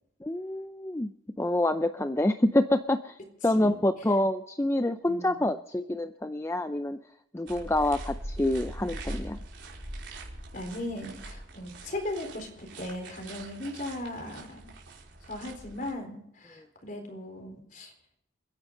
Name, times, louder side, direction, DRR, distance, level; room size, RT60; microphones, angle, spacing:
voice 1, 0.2-1.1 1.4-3.2 3.4-7.0 7.3-9.4 16.6-16.7, left 1 dB, 15° left, 8 dB, 0.5 m, -27 dB
voice 2, 3.5-3.9 5.0-5.4 10.5-14.7 15.2-17.9, left 1 dB, 45° left, 5 dB, 4.1 m, -38 dB
sound 1, 7.5-15.9, right 1 dB, 70° right, 4.9 m, -42 dB
29.5 x 10.5 x 3.9 m, 0.77 s
head